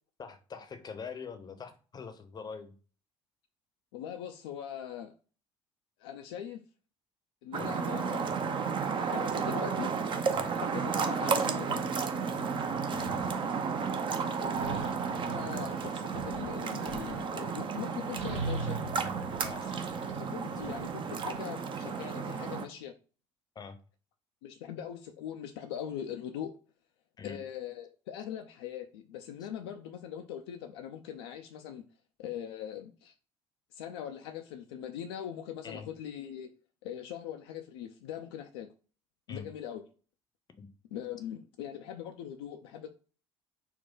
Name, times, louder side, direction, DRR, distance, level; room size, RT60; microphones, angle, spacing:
voice 1, 0.2-2.7 7.6-7.7 10.3-10.5 12.9-13.1 19.4-19.7 23.5-23.8 27.2-27.4 35.6-35.9 39.3-39.4 40.6-40.7, left 5 dB, 30° left, 0.7 m, -44 dB
voice 2, 3.9-5.1 6.0-6.6 7.4-8.3 9.0-9.9 10.5-11.9 14.4-15.0 15.2-18.8 20.2-23.0 24.4-26.6 27.2-31.8 32.2-33.1 33.7-36.5 36.8-38.7 39.3-39.8 40.9-42.9, left 9 dB, 65° left, 0.4 m, -41 dB
sound 1, 7.5-22.7, right 5 dB, 35° right, 0.6 m, -33 dB
sound 2, 12.6-13.3 14.5-17.3 18.2-21.4, right 3 dB, 75° right, 1.2 m, -40 dB
4.3 x 2.2 x 3.7 m
figure-of-eight pair, 55°, 15 cm